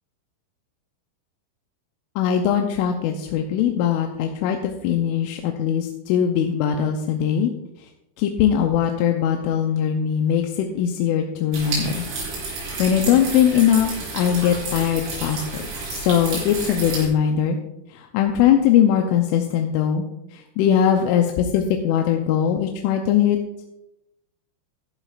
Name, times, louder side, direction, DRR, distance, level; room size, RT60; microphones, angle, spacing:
voice 1, 2.2-7.5 8.2-12.0 12.8-15.4 15.9-17.6 17.9-20.1 20.3-23.4, left 9 dB, 90° left, 3 dB, 3.2 m, -20 dB
sound 1, 11.5-17.1, right 3 dB, 90° right, 7.0 m, -31 dB
14.5 x 11.0 x 2.5 m, 0.89 s
omnidirectional pair, 5.5 m